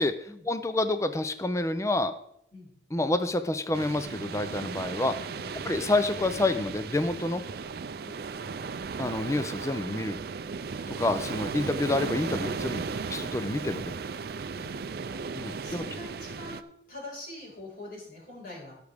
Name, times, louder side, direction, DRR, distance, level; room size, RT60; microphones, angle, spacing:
voice 1, 0.5-2.1 2.9-5.1 5.7-7.4 9.0-10.2 11.0-13.9 15.3-15.8, left 2 dB, 15° left, 11 dB, 0.5 m, -28 dB
sound 1, 3.7-16.6, right 5 dB, 55° right, 0.4 m, -36 dB
voice 2, 5.1-5.6 8.0-8.2 14.5-15.3 15.6-18.7, left 2 dB, 50° left, -4 dB, 5.0 m, -44 dB
16.5 x 6.5 x 3.5 m, 0.75 s
head